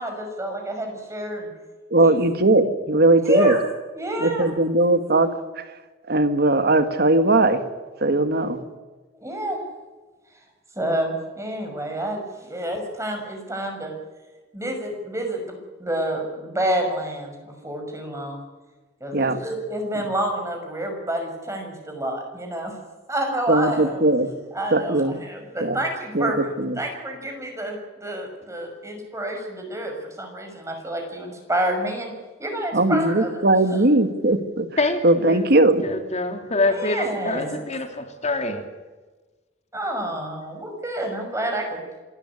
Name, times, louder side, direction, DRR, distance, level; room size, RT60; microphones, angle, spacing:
voice 1, 0.0-1.5 2.0-2.1 3.2-3.6 3.9-4.5 9.2-9.6 10.7-13.9 14.5-18.4 19.0-22.8 23.1-24.0 24.5-26.4 26.8-32.1 32.4-33.4 33.7-33.8 36.7-37.8 39.7-41.8, right 1 dB, 15° right, 3 dB, 6.2 m, -28 dB
voice 2, 1.9-3.6 4.2-5.6 6.1-7.6 8.0-8.6 19.1-19.4 23.5-24.3 24.7-25.2 25.6-25.8 26.1-26.8 32.7-34.7 35.0-35.9, right 2 dB, 55° right, 9 dB, 2.0 m, -19 dB
voice 3, 34.8-35.6 35.8-38.6, left 2 dB, 40° left, 5 dB, 3.0 m, -25 dB
27.0 x 13.5 x 9.9 m, 1.3 s
head